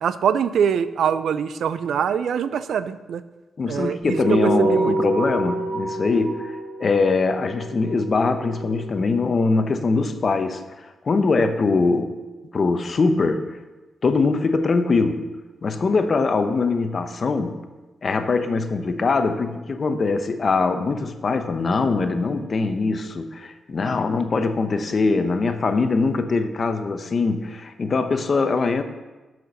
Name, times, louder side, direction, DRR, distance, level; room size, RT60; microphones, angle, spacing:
voice 1, 0.0-3.2 3.7-4.9, right 7 dB, 80° right, 13 dB, 0.4 m, -23 dB
voice 2, 3.6-12.2 12.5-13.5 14.0-15.3 15.6-17.6 18.0-28.8, left 4 dB, 45° left, 8 dB, 0.8 m, -22 dB
sound 1, 4.1-8.9, right 2 dB, 60° right, 1.1 m, -27 dB
6.9 x 6.0 x 6.5 m, 1.2 s
cardioid pair, 85°, 0 cm